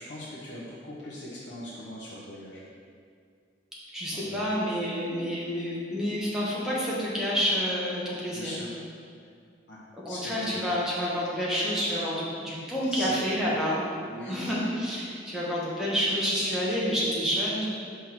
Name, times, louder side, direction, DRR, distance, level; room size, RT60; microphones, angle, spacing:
voice 1, 0.0-2.6 4.1-4.3 8.3-8.7 9.7-9.8 10.1-10.5 12.9-13.4 14.0-14.6, left 1 dB, 75° left, -8 dB, 1.0 m, -40 dB
voice 2, 3.9-8.5 10.0-13.8 14.3-17.7, equal, 5° right, -8 dB, 1.4 m, -28 dB
5.8 x 3.6 x 6.0 m, 2.2 s
head